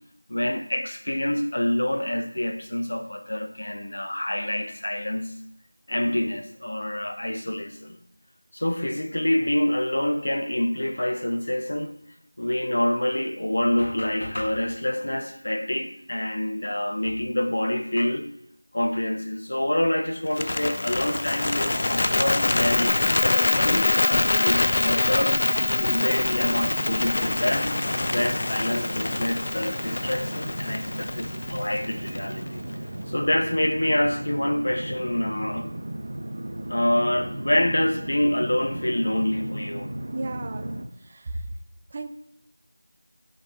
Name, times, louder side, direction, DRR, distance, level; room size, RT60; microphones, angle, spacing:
voice 1, 0.3-5.4 5.9-8.0 8.5-11.9 12.4-18.3 18.7-25.4 25.8-27.7 28.1-32.6 33.1-35.7 36.7-39.9, left 1 dB, 55° left, 1.0 m, -26 dB
Bird, 20.3-32.5, left 2 dB, 30° left, 0.4 m, -25 dB
sound 1, 21.7-40.8, right 1 dB, 45° right, 1.3 m, -35 dB
voice 2, 40.1-41.6 41.9-42.1, right 2 dB, 20° right, 0.5 m, -35 dB
6.2 x 5.2 x 6.6 m
figure-of-eight pair, 175°, 0 cm